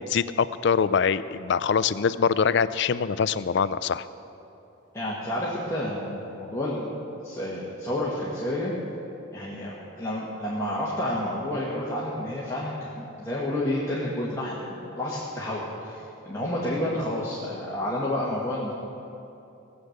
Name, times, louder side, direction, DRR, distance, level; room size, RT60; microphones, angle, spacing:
voice 1, 0.0-4.1, left 6 dB, 55° left, 16 dB, 0.4 m, -24 dB
voice 2, 4.9-8.7 9.3-18.7, left 1 dB, 15° left, -7 dB, 1.6 m, -30 dB
18.0 x 8.1 x 6.6 m, 2.9 s
head